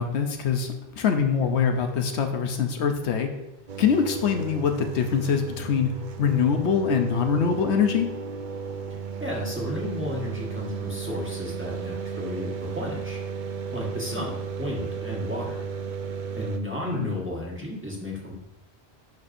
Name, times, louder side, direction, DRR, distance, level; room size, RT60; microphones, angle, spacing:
voice 1, 0.0-3.3 3.8-5.9 6.2-8.1 16.9-17.1, left 6 dB, 85° left, 5 dB, 1.0 m, -24 dB
sound 1, 3.7-16.6, right 6 dB, 55° right, 0.6 m, -34 dB
voice 2, 9.2-13.2 13.7-15.6 16.3-18.3, left 1 dB, 10° right, -4 dB, 1.3 m, -33 dB
11.0 x 4.2 x 2.6 m, 0.90 s
omnidirectional pair, 1.1 m